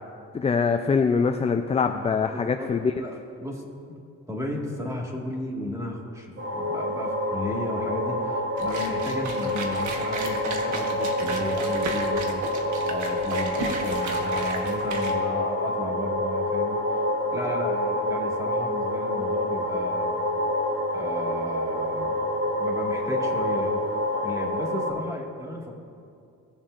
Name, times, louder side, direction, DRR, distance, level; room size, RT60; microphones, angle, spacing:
voice 1, 0.3-2.9, left 5 dB, 20° left, 6 dB, 0.4 m, -23 dB
voice 2, 2.0-4.0 4.3-17.0 17.3-20.2 20.9-22.2 22.6-23.8 24.2-25.7, left 1 dB, 10° right, -1 dB, 1.8 m, -34 dB
sound 1, 6.4-24.9, left 1 dB, 40° right, 1.7 m, -27 dB
sound 2, 8.6-15.1, right 3 dB, 75° right, 1.3 m, -35 dB
18.0 x 7.2 x 2.5 m, 2.4 s
cardioid pair, 90°, 30 cm